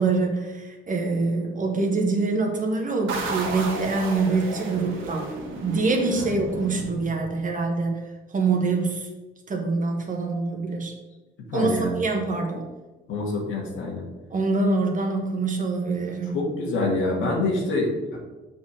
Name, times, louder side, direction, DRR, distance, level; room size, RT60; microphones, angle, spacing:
voice 1, 0.0-5.3 5.6-9.1 9.5-10.9 11.5-12.6 14.3-16.4, right 3 dB, 40° right, 2 dB, 1.4 m, -25 dB
sound 1, 3.1-7.6, right 3 dB, 80° right, 1.8 m, -33 dB
voice 2, 11.5-12.0 13.1-14.1 16.3-18.2, left 2 dB, 80° left, -1 dB, 1.6 m, -26 dB
5.8 x 4.4 x 6.3 m, 1.2 s
cardioid pair, 90°, 20 cm